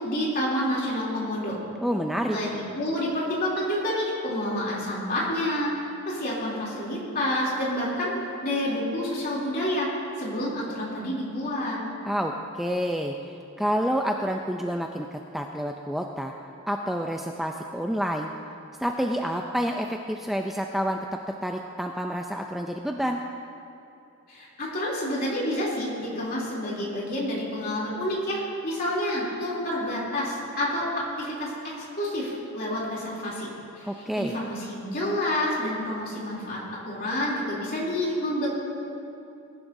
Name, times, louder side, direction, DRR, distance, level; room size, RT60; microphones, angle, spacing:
voice 1, 0.0-1.6 2.3-5.7 6.1-8.1 8.4-9.9 10.2-11.8 24.3-33.5 33.7-33.9 34.2-36.6 36.8-38.5, left 1 dB, 40° left, -5 dB, 3.0 m, -28 dB
voice 2, 1.8-2.4 12.0-13.1 13.6-16.3 16.7-18.3 18.8-21.0 21.4-23.2 33.8-34.3, equal, ahead, 2 dB, 0.3 m, -28 dB
20.5 x 11.0 x 2.6 m, 2.9 s
head